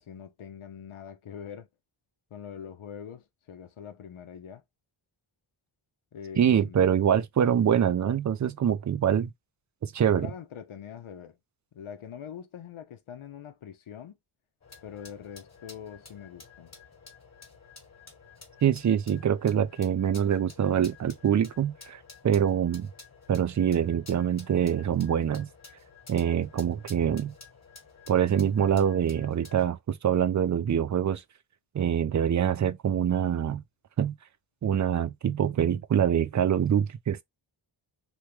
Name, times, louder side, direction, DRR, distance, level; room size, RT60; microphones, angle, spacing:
voice 1, 0.0-1.7 2.3-4.6 6.1-6.8 10.1-11.4 11.7-14.2 14.8-16.7, left 8 dB, 75° left, 0.8 m, -43 dB
voice 2, 6.4-9.3 9.8-10.3 18.6-22.9 23.3-25.5 26.1-27.3 28.1-31.2 31.7-33.6 34.0-34.2 34.6-37.2, right 9 dB, 40° right, 0.4 m, -25 dB
Train Spitter Valve, 14.6-29.7, left 4 dB, 30° left, 1.4 m, -51 dB
3.0 x 2.2 x 3.0 m
wide cardioid pair, 70°, 49 cm